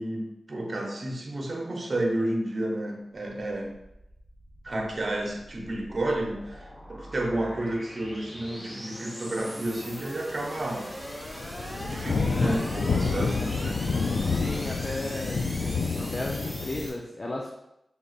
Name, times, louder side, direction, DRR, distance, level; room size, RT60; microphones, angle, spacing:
voice 1, 0.0-3.7 4.6-10.9 11.8-13.8, right 1 dB, 55° right, 1 dB, 0.9 m, -31 dB
sound 1, 3.1-16.9, equal, 10° left, 1.7 m, -41 dB
sound 2, 10.2-10.4 10.6-16.9, left 4 dB, 75° left, 0.3 m, -28 dB
voice 2, 12.2-12.6 14.2-15.5 16.0-17.5, left 2 dB, 45° left, -2 dB, 0.7 m, -35 dB
6.3 x 3.4 x 2.5 m, 0.83 s
cardioid pair, 40°, 0 cm